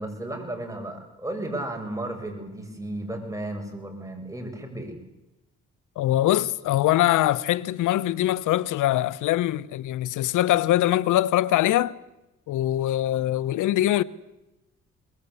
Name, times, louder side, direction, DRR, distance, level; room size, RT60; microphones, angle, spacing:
voice 1, 0.0-5.0, right 1 dB, 10° right, 6.7 m, -34 dB
voice 2, 6.0-11.9 12.5-14.0, left 14 dB, 85° left, 1.0 m, -23 dB
24.5 x 21.0 x 8.3 m
cardioid pair, 90°, 30 cm